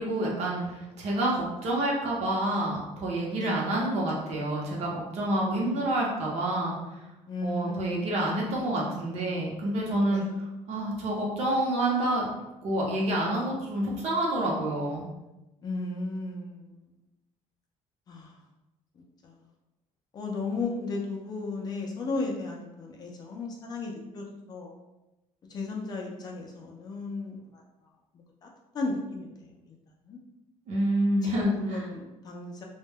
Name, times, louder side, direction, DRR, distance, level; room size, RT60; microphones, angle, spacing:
voice 1, 0.0-6.7 7.4-10.2 10.7-12.3 12.6-15.1 30.7-31.5, right 1 dB, 55° right, -3 dB, 0.7 m, -28 dB
voice 2, 7.3-8.1 10.1-10.3 15.6-17.0 18.1-18.4 19.2-19.4 20.1-24.8 25.5-27.6 28.1-28.5 28.7-29.8 30.0-30.2 31.2-32.6, left 3 dB, 30° left, -1 dB, 0.4 m, -35 dB
2.2 x 2.1 x 3.3 m, 0.99 s
cardioid pair, 175°, 13 cm